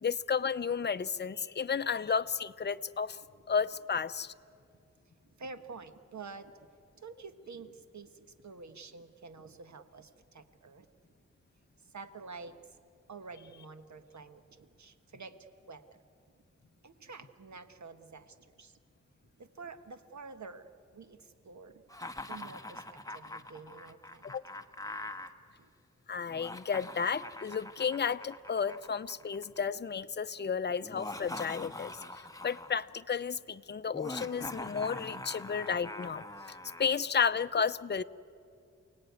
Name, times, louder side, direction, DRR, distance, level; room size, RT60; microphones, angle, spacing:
voice 1, 0.0-3.2 3.5-4.3 24.2-24.4 26.1-38.0, left 6 dB, 35° left, 11 dB, 0.6 m, -32 dB
voice 2, 5.2-6.5 6.9-10.9 11.8-12.6 13.1-15.4 15.6-16.0 16.8-18.8 19.4-21.8 22.2-24.3 25.6-25.7 35.1-35.2, right 4 dB, 70° right, 9 dB, 1.4 m, -49 dB
Laughter, 21.9-25.3 26.3-29.6 30.8-32.8 33.9-36.9, left 2 dB, 10° left, 1.3 m, -43 dB
28.5 x 18.5 x 9.4 m, 2.3 s
wide cardioid pair, 70°, 29 cm